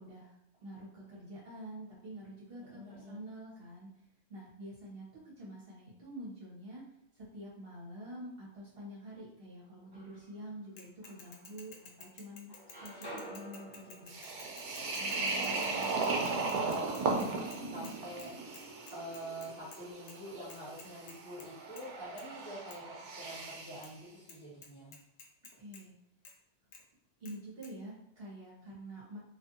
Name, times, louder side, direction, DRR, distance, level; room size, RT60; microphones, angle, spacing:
voice 1, 0.0-3.9 4.3-5.1 5.4-6.8 7.1-12.5 12.8-14.1 17.6-18.0 25.6-25.9 27.2-29.2, right 1 dB, 55° right, -6 dB, 1.1 m, -47 dB
voice 2, 2.6-3.2 15.0-18.3 18.9-25.0, equal, 10° left, -10 dB, 1.2 m, -46 dB
sound 1, 9.6-10.5 11.0-12.0 12.3-16.3, right 1 dB, 20° right, 1.1 m, -51 dB
Bicycle / Mechanisms, 10.8-17.9 18.2-18.3 18.5-19.8 20.1-20.2 20.5-21.5 21.8-21.9 22.2-22.3 22.7-22.8 23.8-23.9 24.3-24.4 24.6-25.8 26.2-26.3 26.7-26.8 27.3-27.4 27.6-27.7, left 4 dB, 75° left, 0.8 m, -53 dB
sound 2, 14.1-23.9, right 3 dB, 85° right, 0.9 m, -36 dB
2.4 x 2.4 x 2.6 m, 0.78 s
omnidirectional pair, 1.2 m